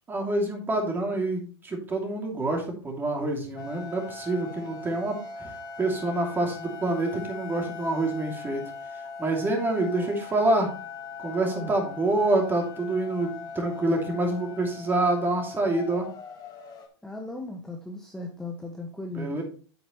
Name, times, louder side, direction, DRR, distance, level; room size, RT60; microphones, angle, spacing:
voice 1, 0.1-5.5 5.8-8.6 9.2-10.7 11.2-16.1 19.1-19.4, right 2 dB, 15° right, 2 dB, 2.6 m, -27 dB
sound 1, 3.6-16.9, left 4 dB, 25° left, 1.6 m, -40 dB
voice 2, 11.4-11.7 17.0-19.4, left 2 dB, 5° left, 2 dB, 1.0 m, -37 dB
8.1 x 8.0 x 3.1 m, 0.39 s
hypercardioid pair, 125°, 14 cm